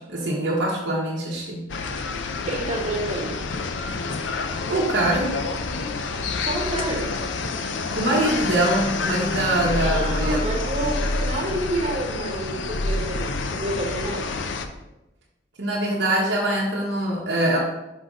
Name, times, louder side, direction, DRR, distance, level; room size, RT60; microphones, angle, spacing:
voice 1, 0.0-1.6 4.7-5.4 8.0-10.4 15.6-17.6, right 1 dB, 65° right, -3 dB, 1.1 m, -23 dB
sound 1, 1.7-14.7, left 3 dB, 80° left, 0.6 m, -28 dB
voice 2, 2.5-3.4 6.4-7.1 9.8-14.3, right 1 dB, 40° right, -2 dB, 1.6 m, -29 dB
6.0 x 4.9 x 3.9 m, 0.97 s
head